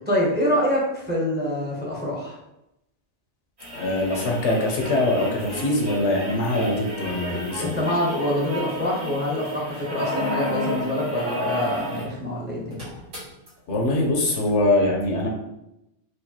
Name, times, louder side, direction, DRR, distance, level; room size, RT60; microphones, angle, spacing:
voice 1, 0.1-2.4 7.6-12.8, left 1 dB, 10° right, -4 dB, 0.8 m, -25 dB
sound 1, 3.6-12.1 12.4-12.5 12.7-13.5 14.5-14.6, left 1 dB, 85° right, 2.0 m, -31 dB
voice 2, 3.7-7.7 13.7-15.3, left 2 dB, 75° left, 0 dB, 1.1 m, -23 dB
4.6 x 2.6 x 2.9 m, 0.86 s
omnidirectional pair, 1.2 m